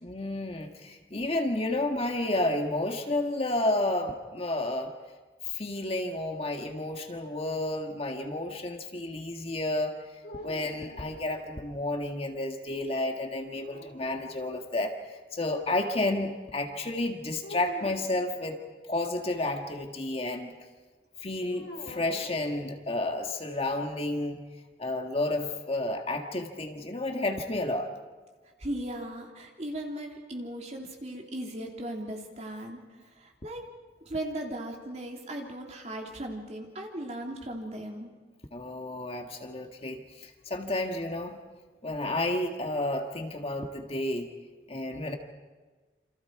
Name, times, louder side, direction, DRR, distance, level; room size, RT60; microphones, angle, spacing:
voice 1, 0.0-4.9 5.5-9.9 10.4-18.6 18.9-20.5 21.2-24.4 24.8-27.9 38.5-41.4 41.8-44.3 44.7-45.1, left 1 dB, 35° left, 4 dB, 1.7 m, -31 dB
sound 1, 10.2-11.8 13.4-14.6 17.4-18.2 21.5-23.1, left 1 dB, 65° left, 4.2 m, -45 dB
voice 2, 28.6-32.8 33.1-33.7 34.0-38.1, right 1 dB, 40° right, 1 dB, 3.2 m, -37 dB
28.0 x 27.0 x 4.8 m, 1.4 s
head